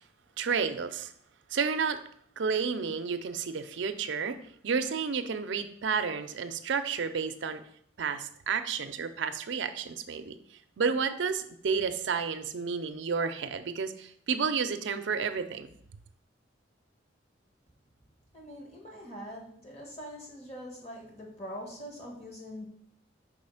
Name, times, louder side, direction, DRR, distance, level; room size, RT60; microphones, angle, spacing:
voice 1, 0.4-1.1 1.5-2.0 2.4-4.4 4.6-7.6 8.0-10.4 10.8-15.7, right 5 dB, 80° right, 9 dB, 0.5 m, -31 dB
voice 2, 18.3-22.7, equal, 35° left, 0 dB, 1.6 m, -43 dB
4.9 x 4.2 x 5.6 m, 0.66 s
head